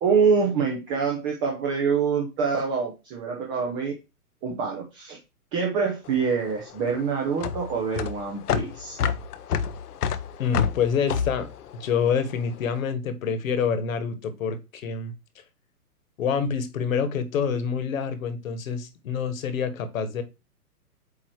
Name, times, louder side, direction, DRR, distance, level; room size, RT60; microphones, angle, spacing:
voice 1, 0.0-3.9 4.4-5.2 5.5-9.1, right 5 dB, 15° right, 1 dB, 0.7 m, -25 dB
sound 1, 6.1-12.6, left 7 dB, 75° left, 0.9 m, -29 dB
voice 2, 10.4-15.1 16.2-20.2, left 6 dB, 60° left, 10 dB, 1.6 m, -27 dB
8.6 x 3.0 x 4.6 m, 0.26 s
hypercardioid pair, 150°, 46 cm